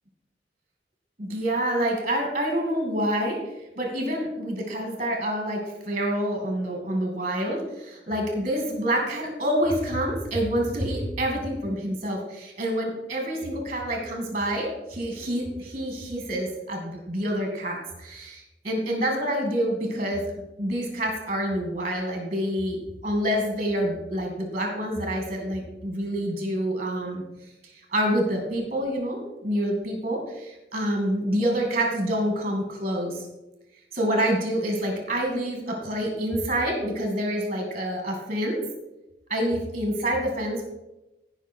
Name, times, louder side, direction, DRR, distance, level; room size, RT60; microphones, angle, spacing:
voice 1, 1.2-3.4 3.8-20.2 20.6-22.8 23.0-27.2 27.9-33.2 33.9-38.6 39.3-40.6, equal, 35° right, 1 dB, 2.4 m, -27 dB
16.0 x 5.3 x 4.6 m, 1.0 s
head